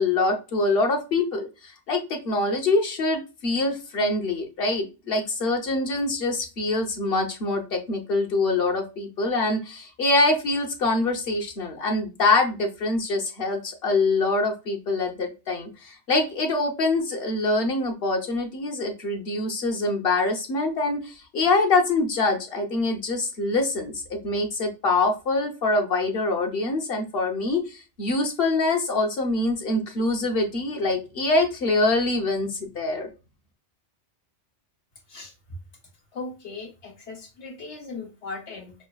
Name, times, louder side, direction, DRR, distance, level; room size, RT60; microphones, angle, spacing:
voice 1, 0.0-33.1, left 2 dB, 55° left, 3 dB, 1.0 m, -24 dB
voice 2, 36.1-38.7, left 3 dB, 75° left, 0 dB, 1.5 m, -38 dB
5.8 x 2.4 x 2.2 m, 0.29 s
omnidirectional pair, 1.2 m